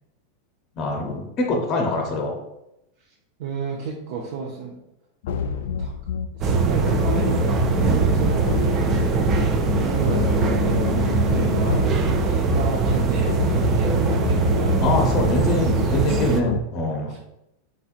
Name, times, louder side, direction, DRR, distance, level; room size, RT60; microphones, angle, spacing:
voice 1, 0.8-2.3 14.8-17.1, left 2 dB, 30° left, 1 dB, 0.7 m, -24 dB
voice 2, 3.4-4.8 5.8-5.9 6.3-7.4 7.8-8.6 9.7-11.8 12.2-14.7 17.1-17.2, right 4 dB, 55° right, -2 dB, 0.7 m, -31 dB
sound 1, 5.2-16.6, left 6 dB, 70° left, 0.3 m, -27 dB
sound 2, 6.4-16.4, right 5 dB, 20° right, 0.4 m, -22 dB
4.3 x 4.2 x 2.5 m, 0.86 s
supercardioid pair, 170°, 0 cm